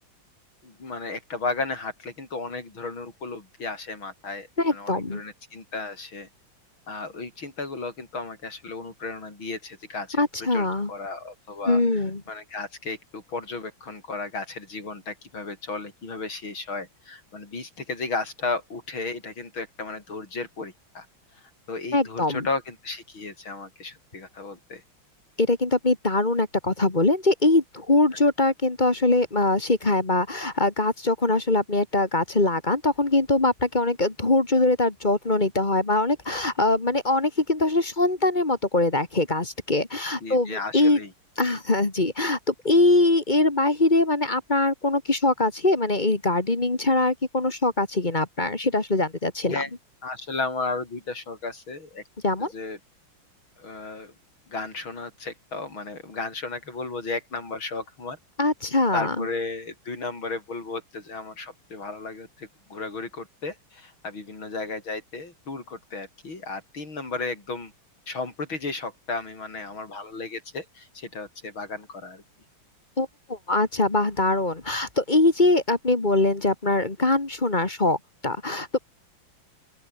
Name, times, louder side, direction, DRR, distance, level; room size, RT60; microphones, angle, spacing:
voice 1, 0.6-6.3 6.9-10.2 10.5-11.8 12.3-21.1 21.4-24.8 40.2-41.1 49.5-49.7 50.0-52.0 52.4-52.8 53.6-54.1 54.5-58.2 58.9-67.7 68.1-72.2, left 3 dB, 85° left, 6.2 m, -34 dB
voice 2, 4.6-5.2 10.2-10.9 11.7-12.2 21.9-22.5 25.4-41.0 41.4-49.6 52.2-52.5 58.4-59.3 73.0-78.0 78.2-78.8, left 2 dB, 25° left, 2.0 m, -22 dB
open air
omnidirectional pair, 2.2 m